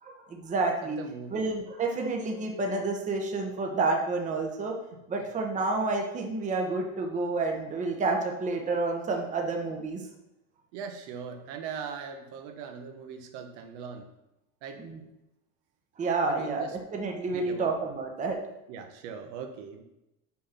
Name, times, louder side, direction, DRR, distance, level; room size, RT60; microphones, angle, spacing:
voice 1, 0.0-1.0 1.3-4.8 5.1-10.0 14.8-15.0 16.0-18.4, right 3 dB, 20° right, 1 dB, 1.1 m, -29 dB
voice 2, 0.8-1.5 4.9-5.0 10.7-14.1 14.6-14.8 16.3-16.8 17.3-17.7 18.7-19.8, right 6 dB, 70° right, 5 dB, 1.3 m, -40 dB
6.3 x 5.6 x 5.9 m, 0.91 s
cardioid pair, 155°, 37 cm